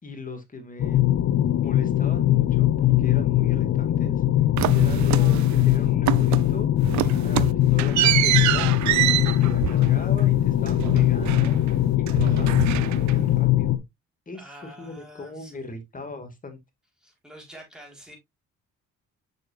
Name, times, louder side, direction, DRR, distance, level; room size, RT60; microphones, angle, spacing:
voice 1, 0.0-1.1 1.6-4.2 4.7-11.6 12.1-13.8 14.3-14.4 14.8-16.6, left 3 dB, 25° left, 2.1 m, -39 dB
sound 1, 0.8-13.8, left 13 dB, 55° left, 0.8 m, -21 dB
sound 2, 4.6-5.8 6.1-6.5 6.8-11.8 12.1-13.4, right 15 dB, 70° right, 0.5 m, -26 dB
voice 2, 14.3-15.7 17.0-18.2, equal, ahead, 4.1 m, -47 dB
6.7 x 6.3 x 2.5 m
cardioid pair, 90°, 30 cm